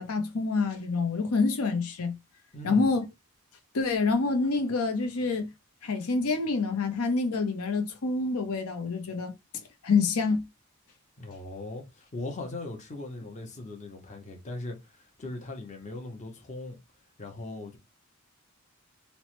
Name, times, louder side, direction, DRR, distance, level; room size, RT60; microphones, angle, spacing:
voice 1, 0.0-2.2 2.6-3.1 3.7-5.5 5.8-9.3 9.8-10.4, left 4 dB, 85° left, 0.7 m, -27 dB
voice 2, 2.5-3.0 11.2-16.8 17.2-17.8, left 2 dB, 35° left, 0.7 m, -39 dB
3.0 x 2.1 x 3.0 m
head